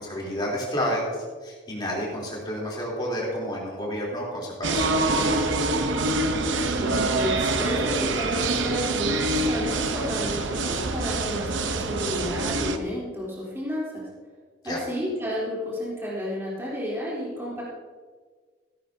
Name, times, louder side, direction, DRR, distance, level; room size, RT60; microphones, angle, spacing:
voice 1, 0.0-5.5 14.6-14.8, equal, 25° left, -3 dB, 3.5 m, -30 dB
sound 1, 4.6-12.8, right 2 dB, 90° right, 0.8 m, -25 dB
voice 2, 6.6-14.0 14.6-17.6, equal, 15° right, -7 dB, 3.5 m, -31 dB
15.0 x 12.5 x 2.8 m, 1.5 s
head